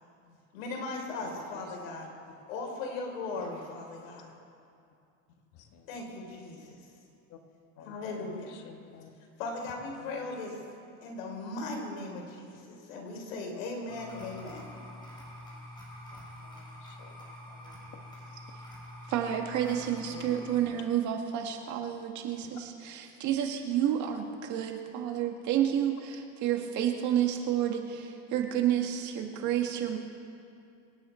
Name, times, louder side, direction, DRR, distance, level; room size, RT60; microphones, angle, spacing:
voice 1, 0.5-2.1 2.5-4.3 5.9-6.8 7.8-8.5 9.4-10.6 11.0-14.7, left 3 dB, 85° left, 1 dB, 3.9 m, -38 dB
voice 2, 1.2-1.8 3.4-3.6 5.5-6.1 7.3-7.4 7.8-9.1 9.6-10.6 13.5-13.6 16.1-18.1 20.1-20.4 20.7-20.9 22.4-22.6 24.1-24.4 27.5-27.7 29.4-29.6, left 7 dB, 50° left, 4 dB, 1.8 m, -52 dB
sound 1, 13.9-20.6, left 1 dB, 10° left, 4.3 m, -46 dB
voice 3, 19.1-30.0, right 10 dB, 50° right, 3 dB, 2.0 m, -30 dB
26.0 x 9.2 x 4.5 m, 2.5 s
supercardioid pair, 135°, 38 cm